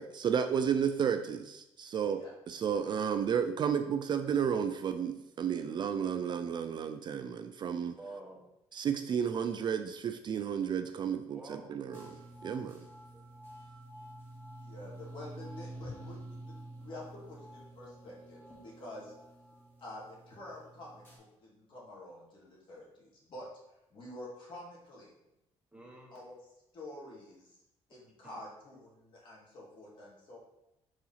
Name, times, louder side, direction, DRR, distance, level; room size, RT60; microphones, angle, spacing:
voice 1, 0.0-2.2 2.5-8.0 8.7-12.2 12.4-12.8, right 7 dB, 40° right, 8 dB, 0.4 m, -32 dB
voice 2, 8.0-8.5 11.3-11.7 13.1-13.3 25.7-26.2 28.2-28.3, right 2 dB, 10° right, -1 dB, 1.1 m, -48 dB
sound 1, 11.9-21.2, right 1 dB, 20° left, 2.0 m, -49 dB
voice 3, 14.6-19.1 19.8-23.5 23.9-25.1 26.1-26.4 26.7-27.6 27.9-30.4, left 1 dB, 45° left, -4 dB, 2.4 m, -48 dB
4.9 x 3.9 x 5.6 m, 0.87 s
cardioid pair, 135°, 11 cm